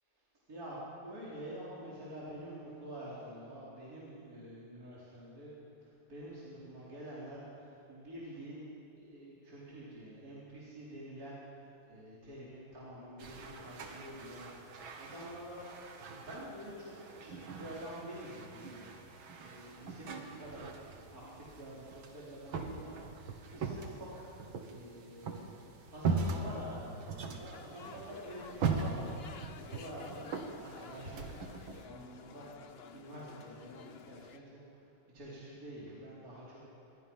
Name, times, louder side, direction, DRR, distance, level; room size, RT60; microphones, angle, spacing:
voice 1, 0.5-8.6 9.0-15.6 16.1-25.5 25.9-32.5 32.9-36.6, right 1 dB, 45° right, -8 dB, 4.8 m, -48 dB
sound 1, 13.2-31.9, right 4 dB, 80° right, 2.4 m, -41 dB
sound 2, 27.5-34.4, left 7 dB, 75° left, 0.5 m, -52 dB
26.5 x 22.0 x 5.6 m, 2.6 s
omnidirectional pair, 2.2 m